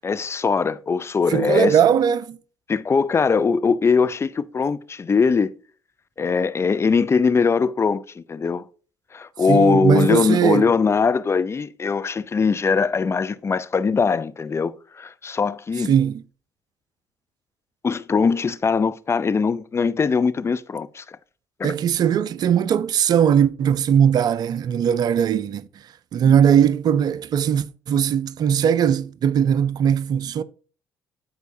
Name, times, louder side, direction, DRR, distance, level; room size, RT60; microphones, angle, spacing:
voice 1, 0.0-1.8 2.7-5.5 6.2-8.6 9.1-15.9 17.8-21.2 21.6-21.7, left 5 dB, 30° left, 0.6 m, -21 dB
voice 2, 1.3-2.4 9.5-10.7 15.9-16.2 21.6-25.7 26.1-30.4, right 8 dB, 55° right, 0.5 m, -19 dB
13.5 x 4.7 x 2.7 m
hypercardioid pair, 50°, 8 cm